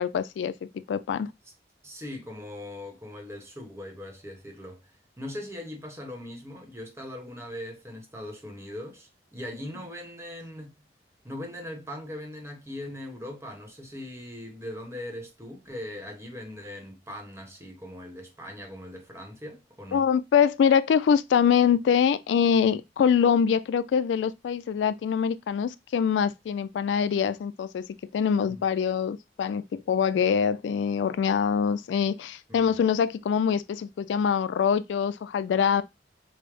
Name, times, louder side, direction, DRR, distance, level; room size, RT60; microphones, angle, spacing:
voice 1, 0.0-1.3 19.9-27.9 28.1-35.8, left 7 dB, 90° left, 0.3 m, -24 dB
voice 2, 1.8-4.9 5.2-10.7 11.2-20.0 28.5-28.6 32.5-32.7, left 1 dB, 15° right, 0.9 m, -40 dB
5.1 x 2.0 x 3.3 m
head